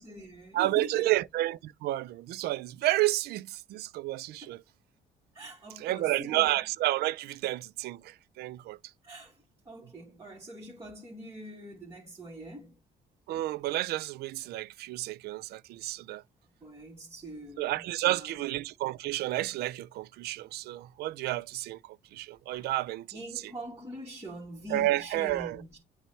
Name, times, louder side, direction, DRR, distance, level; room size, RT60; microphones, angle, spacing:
voice 1, 0.0-1.2 4.4-4.6 5.3-6.5 9.0-9.4 9.7-12.8 16.6-18.5 22.5-22.7 23.1-25.8, right 1 dB, 15° right, 2.5 m, -44 dB
voice 2, 0.5-4.6 5.8-8.8 13.3-16.2 17.6-23.2 24.7-25.6, right 16 dB, 70° right, 0.4 m, -31 dB
9.1 x 3.2 x 3.2 m
cardioid pair, 110°, 17 cm